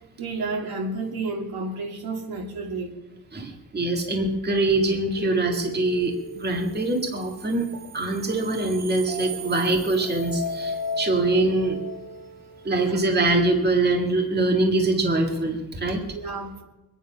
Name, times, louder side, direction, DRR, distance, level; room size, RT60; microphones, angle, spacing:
voice 1, 0.2-2.9 12.8-12.9 16.1-16.6, right 3 dB, 75° right, 3.0 m, -31 dB
voice 2, 3.3-7.7 7.9-11.8 12.7-16.0, right 2 dB, 25° right, 1.9 m, -23 dB
sound 1, 5.2-13.1, left 1 dB, 45° right, 1.9 m, -36 dB
24.0 x 10.0 x 5.7 m
wide cardioid pair, 170°, 37 cm